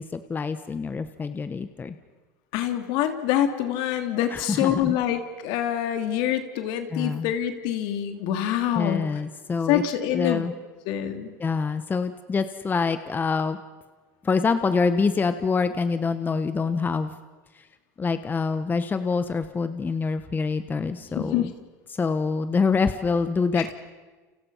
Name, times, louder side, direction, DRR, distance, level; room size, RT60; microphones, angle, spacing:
voice 1, 0.0-1.9 4.3-5.0 6.9-7.3 8.7-9.8 10.1-10.5 11.4-13.6 14.2-17.1 17.5-17.7 18.0-21.5 21.9-23.7, left 4 dB, 20° left, 10 dB, 1.2 m, -26 dB
voice 2, 2.5-9.0 9.7-10.4 10.9-11.3 21.1-21.5 23.6-23.7, left 11 dB, 65° left, 6 dB, 3.0 m, -25 dB
29.5 x 29.5 x 5.7 m, 1.3 s
supercardioid pair, 105°, 9 cm